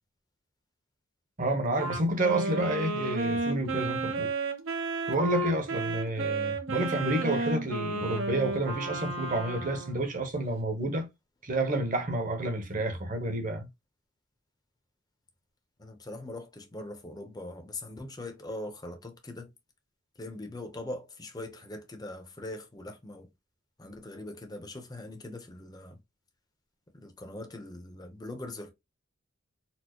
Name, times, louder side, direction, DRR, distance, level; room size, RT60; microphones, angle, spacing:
voice 1, 1.4-4.3 5.1-11.1 11.4-13.7, right 1 dB, 40° right, 0.9 m, -30 dB
Wind instrument woodwind instrument, 1.7-10.0, right 3 dB, 70° right, 0.8 m, -32 dB
voice 2, 15.8-19.5 20.2-23.3 23.8-26.0 26.9-28.7, left 1 dB, 20° left, 0.7 m, -41 dB
4.3 x 2.0 x 2.9 m
head